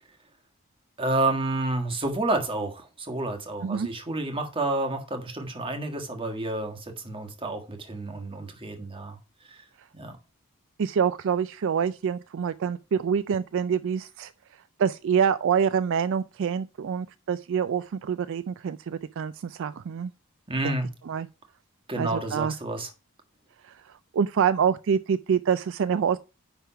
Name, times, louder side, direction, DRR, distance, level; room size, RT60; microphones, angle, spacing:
voice 1, 1.0-9.2 9.5-9.6 9.9-10.2 20.5-20.9 21.9-22.9, right 2 dB, 25° right, 1.6 m, -30 dB
voice 2, 10.8-14.3 14.8-20.1 20.6-20.8 21.1-21.3 22.0-22.5 23.6-26.2, right 7 dB, 60° right, 0.3 m, -26 dB
10.0 x 3.6 x 5.8 m
head